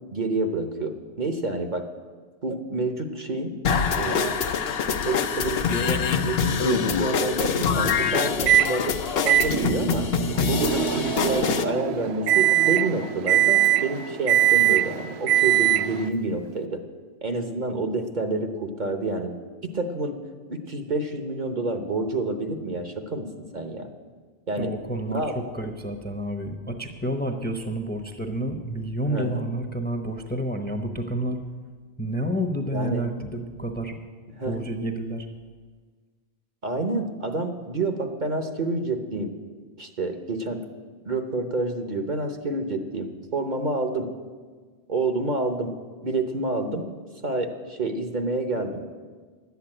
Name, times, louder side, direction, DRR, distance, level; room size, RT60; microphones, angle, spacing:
voice 1, 0.1-1.9 2.4-3.5 4.0-4.8 5.1-16.8 17.2-20.2 20.5-23.3 23.5-23.9 24.5-24.7 25.1-25.4 29.1-29.4 32.7-33.1 34.3-34.6 36.6-39.3 39.8-40.6 41.1-44.1 44.9-45.7 46.0-46.8 47.2-48.8, right 2 dB, 50° right, 6 dB, 1.1 m, -28 dB
sound 1, 3.6-11.6, left 6 dB, 70° left, 1.0 m, -25 dB
Microwave oven, 8.5-8.7 9.3-16.1, right 12 dB, 80° right, 0.8 m, -22 dB
voice 2, 24.6-31.4 32.0-34.0 34.4-35.3, right 1 dB, 10° left, 5 dB, 0.8 m, -29 dB
11.5 x 8.2 x 8.8 m, 1.5 s
omnidirectional pair, 1.1 m